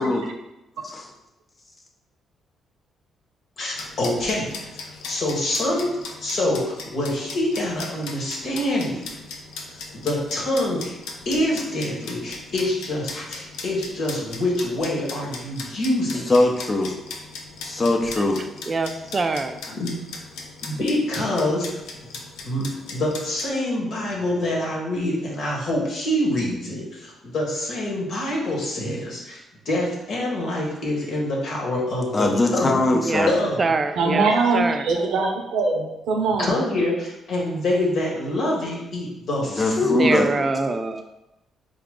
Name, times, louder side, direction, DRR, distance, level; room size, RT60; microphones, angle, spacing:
voice 1, 3.6-5.9 6.2-9.1 9.7-11.0 11.2-16.3 19.7-20.0 20.6-22.2 22.4-22.6 22.9-32.9 33.3-33.8 36.4-40.0, left 1 dB, 70° left, -3 dB, 1.3 m, -26 dB
sound 1, 3.7-23.5, left 4 dB, 85° left, 0.5 m, -38 dB
voice 2, 16.3-16.9 17.6-18.4 32.1-33.3 39.6-40.3, left 2 dB, 35° left, 2 dB, 0.7 m, -20 dB
voice 3, 18.7-19.6 32.9-33.3 33.6-34.9 40.0-41.0, right 3 dB, 35° right, 8 dB, 0.3 m, -24 dB
voice 4, 34.0-36.6, right 3 dB, 80° right, 2 dB, 0.6 m, -22 dB
3.8 x 2.3 x 3.6 m, 0.92 s
supercardioid pair, 65°, 0 cm